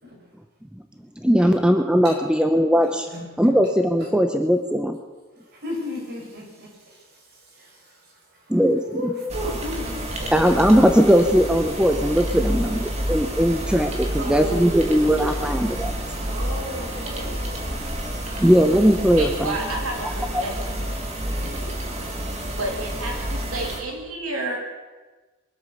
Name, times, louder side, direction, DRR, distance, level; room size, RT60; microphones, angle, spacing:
voice 1, 1.2-3.1 3.4-5.0 8.5-8.8 10.3-15.9 18.4-19.6 20.0-20.4, equal, 5° right, 6 dB, 0.8 m, -19 dB
voice 2, 2.8-3.7 4.0-4.1 5.3-10.3 12.6-13.1 13.4-13.6 14.1-15.4 15.9-18.5 21.4-22.1, left 1 dB, 50° right, -2 dB, 5.5 m, -36 dB
sound 1, 9.3-23.8, equal, 30° right, 2.1 m, -29 dB
voice 3, 19.2-20.8 22.6-24.6, right 2 dB, 75° right, 1 dB, 3.1 m, -30 dB
23.5 x 8.6 x 7.0 m, 1.3 s
head